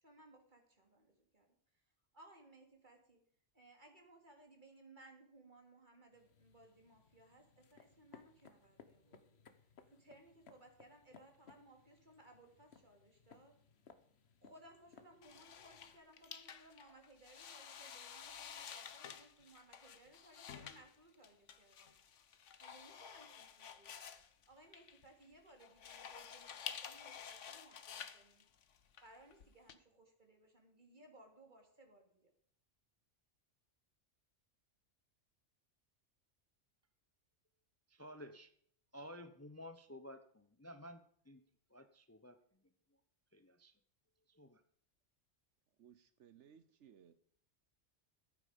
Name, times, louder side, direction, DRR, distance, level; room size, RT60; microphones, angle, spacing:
voice 1, 0.0-1.8 2.1-3.2 3.5-9.4 9.9-13.5 14.4-21.9 22.6-23.9 24.5-28.4 29.0-32.3, right 2 dB, 40° right, 3 dB, 3.0 m, -63 dB
sound 1, 6.1-16.0, left 6 dB, 60° left, 1.3 m, -64 dB
sound 2, 15.2-29.7, left 7 dB, 85° left, 1.3 m, -51 dB
voice 2, 37.9-38.5 38.9-41.4 41.7-42.4 43.3-43.7 44.3-44.6, equal, 15° left, 10 dB, 0.7 m, -53 dB
voice 3, 45.8-47.1, right 8 dB, 80° right, 12 dB, 1.1 m, -62 dB
14.5 x 9.1 x 5.1 m, 0.64 s
omnidirectional pair, 1.2 m